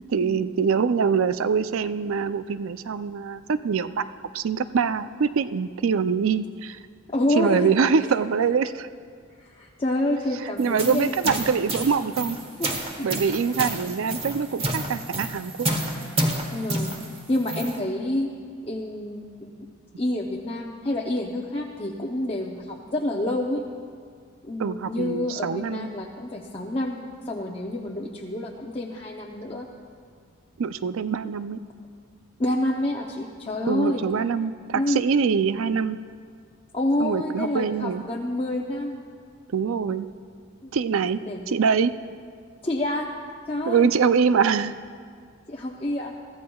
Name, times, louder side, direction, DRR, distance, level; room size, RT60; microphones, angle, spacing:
voice 1, 0.1-4.1 4.3-6.8 7.4-8.9 10.6-12.4 13.0-15.7 24.6-25.9 30.6-31.6 33.7-36.0 37.0-38.0 39.5-40.1 40.7-41.2 41.5-41.9 43.7-44.7, right 6 dB, 70° right, 13 dB, 0.4 m, -24 dB
voice 2, 7.1-7.7 8.0-8.1 9.4-11.3 12.6-13.3 13.6-13.8 16.5-17.0 17.3-18.3 18.6-19.5 20.0-23.6 24.4-29.7 31.3-31.5 32.4-34.1 34.7-35.0 36.7-39.0 40.6-40.7 41.0-41.6 42.6-43.1 43.5-43.9 45.5-46.1, left 1 dB, 25° left, -1 dB, 0.7 m, -28 dB
sound 1, 10.6-17.8, right 1 dB, 25° right, 1.2 m, -30 dB
23.0 x 14.5 x 2.3 m, 2.1 s
head